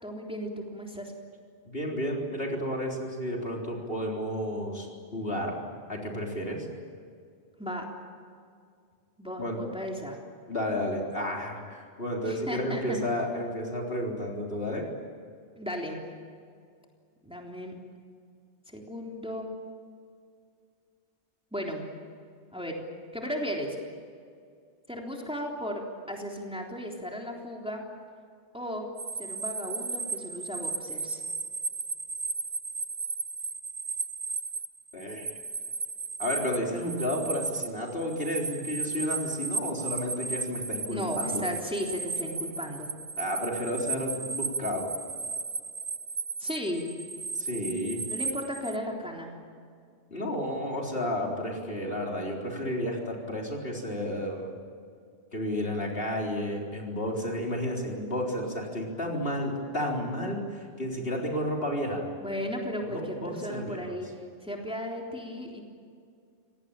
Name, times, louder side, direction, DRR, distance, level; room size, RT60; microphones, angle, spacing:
voice 1, 0.0-1.1 7.6-7.9 9.2-10.2 12.3-13.0 15.6-16.0 17.2-17.8 18.7-19.5 21.5-21.9 22.5-22.8 23.1-23.8 24.9-27.8 28.5-28.9 29.2-31.2 40.9-42.9 46.4-46.9 48.1-49.4 62.2-64.1 64.4-65.6, equal, 5° right, 0 dB, 3.5 m, -35 dB
voice 2, 1.7-4.9 5.1-5.6 5.9-6.7 9.4-9.6 10.5-14.9 34.9-35.3 36.2-41.4 43.2-44.9 47.3-48.0 50.1-54.5 55.3-62.0 62.9-64.0, equal, 60° left, -1 dB, 4.2 m, -32 dB
sound 1, 29.0-48.8, right 4 dB, 30° right, 0.5 m, -35 dB
26.0 x 19.0 x 8.9 m, 2.3 s
omnidirectional pair, 1.1 m